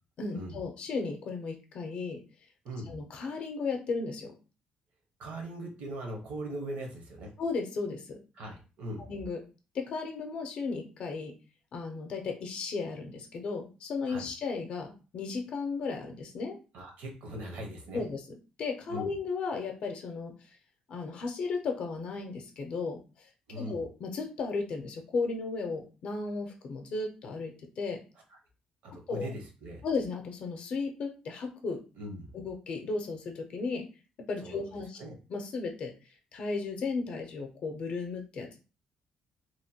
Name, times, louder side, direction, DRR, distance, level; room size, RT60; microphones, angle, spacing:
voice 1, 0.2-2.2 2.9-4.3 7.4-8.2 9.1-9.4 9.7-11.3 11.7-16.6 17.9-18.2 18.6-20.3 20.9-23.3 23.6-28.0 29.1-29.3 29.8-31.8 32.3-33.9 34.3-35.0 35.3-35.9 36.3-38.6, left 4 dB, 50° left, 3 dB, 0.5 m, -35 dB
voice 2, 5.2-7.3 8.4-9.0 14.1-14.3 16.7-18.0 18.9-19.1 23.5-23.8 28.8-29.8 31.9-32.3 34.4-34.7 35.0-35.1, right 1 dB, 80° right, 1 dB, 0.9 m, -40 dB
2.9 x 2.1 x 2.7 m, 0.33 s
cardioid pair, 155°, 2 cm